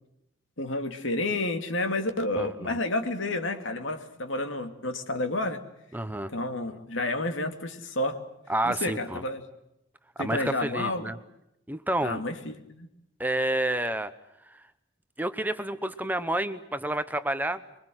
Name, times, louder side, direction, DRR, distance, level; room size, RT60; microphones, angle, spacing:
voice 1, 0.6-5.6 6.3-8.2 8.6-9.4 10.2-11.1 12.0-12.9, left 2 dB, 75° left, 6 dB, 2.8 m, -30 dB
voice 2, 2.3-2.8 5.9-6.3 8.5-9.2 10.2-11.2 11.7-12.2 13.2-14.1 14.5-14.6 15.2-17.6, right 1 dB, 10° right, 11 dB, 0.9 m, -29 dB
25.0 x 23.5 x 8.0 m, 0.82 s
head